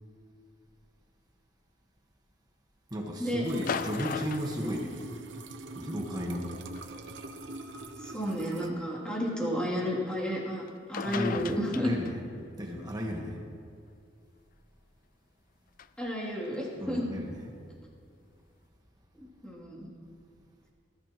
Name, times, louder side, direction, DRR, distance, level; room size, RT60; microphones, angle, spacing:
voice 1, 2.9-4.9 5.7-6.5 11.0-12.2 12.6-13.4 16.8-17.5, equal, 20° right, 0 dB, 1.4 m, -34 dB
sound 1, 3.4-8.7, right 2 dB, 75° right, 0.9 m, -43 dB
sound 2, 3.5-5.5 6.7-6.9 7.8-7.9 10.7-10.8 10.9-12.4 15.8-15.9, left 7 dB, 50° left, 0.4 m, -37 dB
voice 2, 8.0-10.6 10.9-11.9 16.0-17.1 19.2-19.9, equal, 5° left, -6 dB, 2.9 m, -32 dB
20.0 x 13.5 x 3.1 m, 2.3 s
head